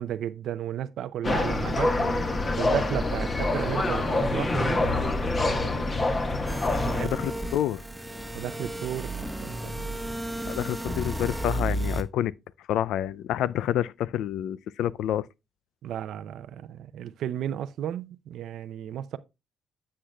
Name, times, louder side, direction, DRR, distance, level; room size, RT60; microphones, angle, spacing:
voice 1, 0.0-2.2 2.6-6.0 6.8-7.1 8.3-9.9 15.8-19.2, right 10 dB, 75° right, 0.5 m, -34 dB
sound 1, 1.2-7.0, left 2 dB, 30° left, 1.4 m, -26 dB
sound 2, 6.5-12.0, right 1 dB, 5° right, 1.1 m, -33 dB
voice 2, 7.0-7.8 10.5-12.3 12.7-15.3, left 11 dB, 85° left, 0.3 m, -28 dB
10.0 x 7.6 x 2.3 m
cardioid pair, 90°, 0 cm